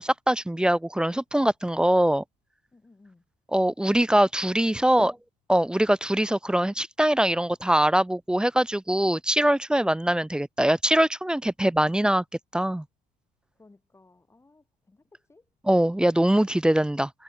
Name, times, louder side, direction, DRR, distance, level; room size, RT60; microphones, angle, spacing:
voice 1, 0.0-2.2 3.5-5.1 5.5-12.2 12.5-12.8 15.7-17.1, right 1 dB, 5° right, 0.5 m, -22 dB
voice 2, 2.7-3.2 4.6-5.2 13.5-15.5, left 3 dB, 15° left, 6.3 m, -58 dB
cardioid pair, 110°, 17 cm